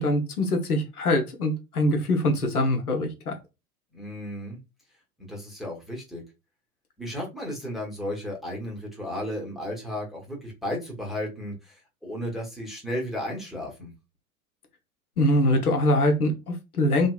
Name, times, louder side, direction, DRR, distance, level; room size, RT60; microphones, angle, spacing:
voice 1, 0.0-3.4 15.2-17.1, left 1 dB, 80° left, 4 dB, 0.9 m, -23 dB
voice 2, 3.9-4.6 5.2-6.2 7.0-13.9, left 1 dB, ahead, -3 dB, 1.0 m, -34 dB
3.2 x 2.8 x 2.3 m, 0.26 s
figure-of-eight pair, 85°, 44 cm